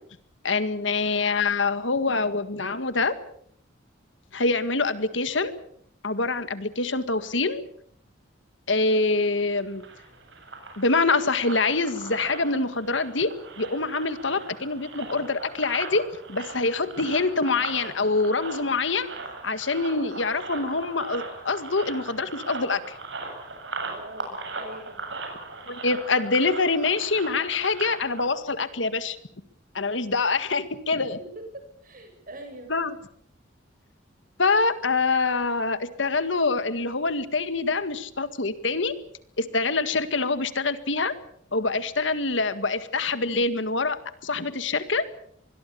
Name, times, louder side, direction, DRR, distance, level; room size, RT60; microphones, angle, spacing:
voice 1, 0.4-3.2 4.3-5.5 6.0-7.6 8.7-9.8 10.8-13.3 13.6-19.1 19.4-23.0 25.6-29.2 29.7-31.2 32.7-32.9 34.4-38.9 39.4-41.1 41.5-45.0, left 3 dB, 75° left, 12 dB, 1.9 m, -25 dB
sound 1, 9.6-28.3, right 3 dB, 70° right, 7.7 m, -39 dB
voice 2, 23.8-25.0 31.2-31.3 31.5-32.8, right 1 dB, 45° right, 6 dB, 7.6 m, -43 dB
25.0 x 21.5 x 7.0 m, 0.66 s
head